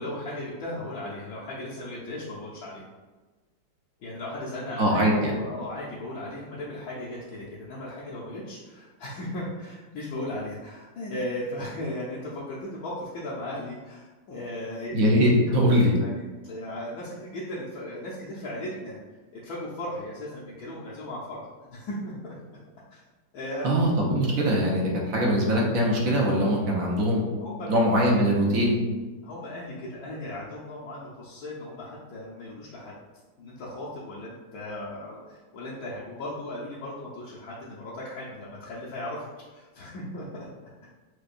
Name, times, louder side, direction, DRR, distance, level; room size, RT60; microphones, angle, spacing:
voice 1, 0.0-2.8 4.0-14.9 16.0-19.0 19.4-22.3 22.9-23.0 23.3-23.7 27.3-27.7 29.2-32.9 33.4-40.5 40.8-40.9, left 1 dB, 65° left, -7 dB, 1.0 m, -36 dB
voice 2, 4.8-5.3 14.9-15.9 23.6-27.2 27.7-28.8, equal, 60° right, -2 dB, 0.9 m, -22 dB
6.2 x 2.2 x 2.5 m, 1.2 s
omnidirectional pair, 2.0 m